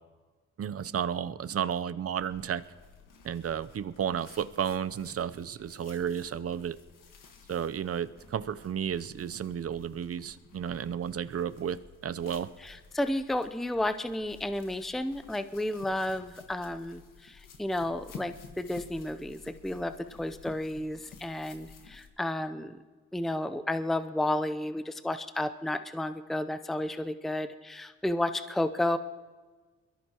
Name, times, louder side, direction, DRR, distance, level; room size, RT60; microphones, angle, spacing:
voice 1, 0.6-2.6 3.2-6.8 7.5-12.5, right 8 dB, 45° right, 13 dB, 0.7 m, -32 dB
sound 1, 2.2-22.1, left 5 dB, 80° left, 1.6 m, -53 dB
voice 2, 12.6-19.9 20.2-22.8 23.1-29.0, left 1 dB, ahead, 10 dB, 0.7 m, -32 dB
22.5 x 14.0 x 3.0 m, 1.3 s
supercardioid pair, 55°, 32 cm